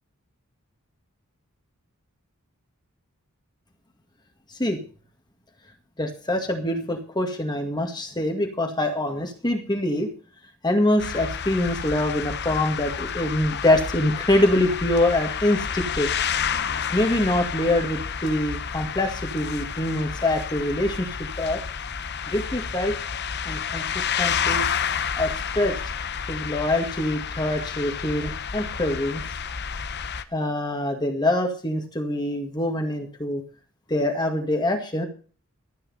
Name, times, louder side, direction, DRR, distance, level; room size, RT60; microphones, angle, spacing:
voice 1, 6.0-10.1 10.6-16.1 16.9-21.6 22.3-23.0 23.5-24.7 25.2-25.8 26.3-29.2 30.3-33.4 33.9-35.1, left 1 dB, 20° left, 4 dB, 2.0 m, -24 dB
sound 1, 11.0-30.2, left 7 dB, 50° left, 1.0 m, -30 dB
13.5 x 8.8 x 5.6 m, 0.38 s
head